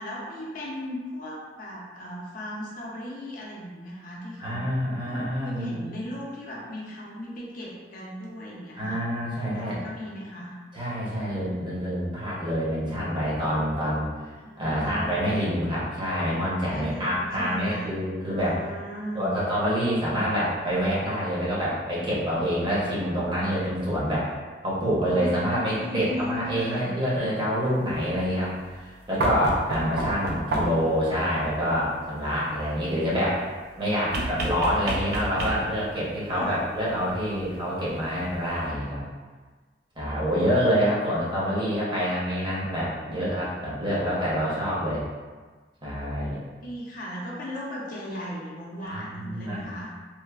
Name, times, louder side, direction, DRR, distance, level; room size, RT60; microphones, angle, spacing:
voice 1, 0.0-4.7 5.0-9.0 9.4-10.5 14.4-15.3 16.7-17.9 18.2-19.3 24.8-26.9 30.0-30.8 33.1-33.2 34.7-34.9 36.3-36.6 40.2-40.9 41.4-41.5 46.6-49.9, equal, 50° left, -4 dB, 0.5 m, -37 dB
voice 2, 4.4-6.0 8.8-9.8 10.7-14.1 14.6-18.6 19.1-24.3 24.6-33.5 33.8-39.0 40.0-45.0 45.8-46.4 48.8-49.6, equal, 25° right, -8 dB, 0.8 m, -27 dB
sound 1, 29.2-31.0 34.1-35.9 37.4-37.5, right 2 dB, 55° right, 0.3 m, -29 dB
3.1 x 2.0 x 2.3 m, 1.4 s
head